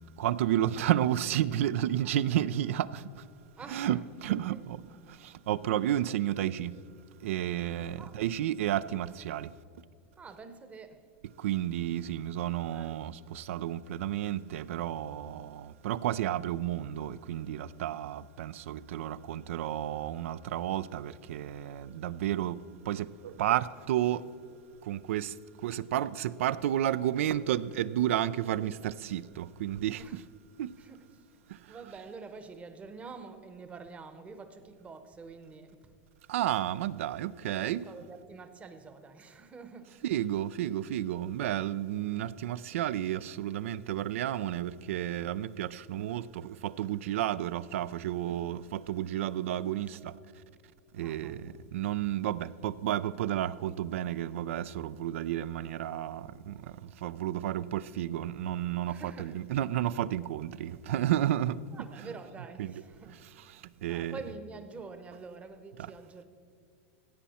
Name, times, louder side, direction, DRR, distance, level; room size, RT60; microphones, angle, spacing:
voice 1, 0.2-2.9 3.7-4.8 5.5-6.7 7.2-9.5 11.4-22.6 22.9-23.1 23.4-24.2 24.9-25.3 25.6-30.0 30.6-30.7 36.3-37.8 40.0-46.2 46.6-50.1 51.0-51.4 51.7-56.5 57.0-61.6 62.6-62.7 63.8-64.2, right 12 dB, 85° right, 0.4 m, -31 dB
voice 2, 3.6-4.8 8.0-8.1 10.2-11.0 12.7-13.0 30.0-30.2 30.8-36.0 37.6-40.2 48.2-48.4 51.0-51.4 58.8-59.5 61.7-63.2 63.5-63.6 63.9-66.2, right 4 dB, 20° right, 0.8 m, -47 dB
16.0 x 8.3 x 4.2 m
supercardioid pair, 135°, 7 cm